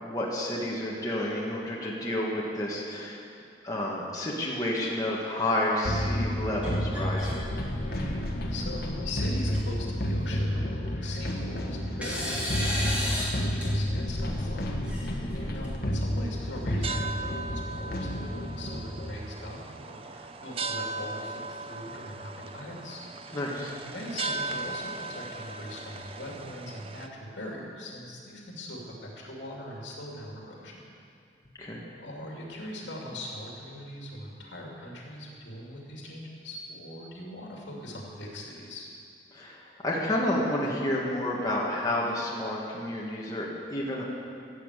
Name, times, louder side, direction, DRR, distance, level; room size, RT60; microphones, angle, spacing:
voice 1, 0.0-3.2 3.6-7.5 15.2-15.5 23.3-23.7 31.6-31.8 39.3-44.0, left 1 dB, 20° left, -4 dB, 1.7 m, -30 dB
sound 1, 5.8-19.1, equal, 55° left, 1.2 m, -31 dB
sound 2, 6.6-7.4 7.8-8.2 9.1-9.2 9.5-9.6 10.9-11.5 12.0-13.3 13.6-13.7 14.8-15.7, equal, 5° right, 2.8 m, -34 dB
voice 2, 8.5-14.7 15.1-30.9 32.0-38.9, left 1 dB, 75° left, -2 dB, 2.6 m, -41 dB
sound 3, 16.2-27.1, right 3 dB, 30° right, 0.5 m, -38 dB
14.5 x 7.1 x 8.2 m, 2.5 s
head